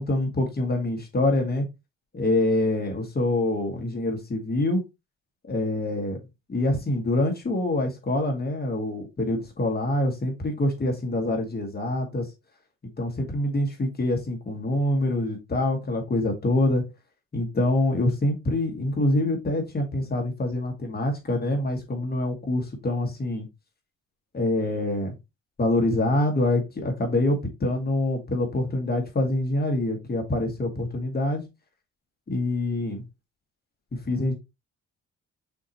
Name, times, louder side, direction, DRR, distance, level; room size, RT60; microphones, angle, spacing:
voice 1, 0.0-1.7 2.1-4.8 5.5-6.2 6.5-12.3 13.0-16.8 17.3-23.5 24.3-25.1 25.6-31.4 32.3-33.1 33.9-34.3, left 1 dB, 30° left, 1.9 m, -25 dB
6.2 x 2.9 x 3.0 m
cardioid pair, 90°, 30 cm